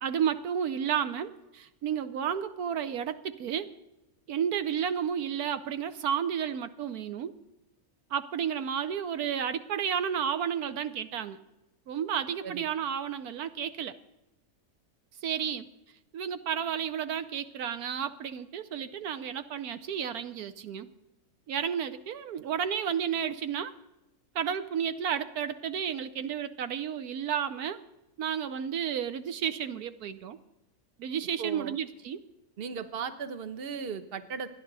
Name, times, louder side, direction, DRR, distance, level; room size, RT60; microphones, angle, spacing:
voice 1, 0.0-3.7 4.3-7.3 8.1-11.4 11.9-14.0 15.2-15.7 16.1-20.9 21.5-23.7 24.3-27.8 28.2-30.4 31.0-32.2, right 8 dB, 75° right, 11 dB, 1.2 m, -32 dB
voice 2, 31.4-31.8 32.6-34.6, right 6 dB, 45° right, 10 dB, 1.1 m, -37 dB
28.0 x 10.5 x 4.0 m, 1.0 s
omnidirectional pair, 1.6 m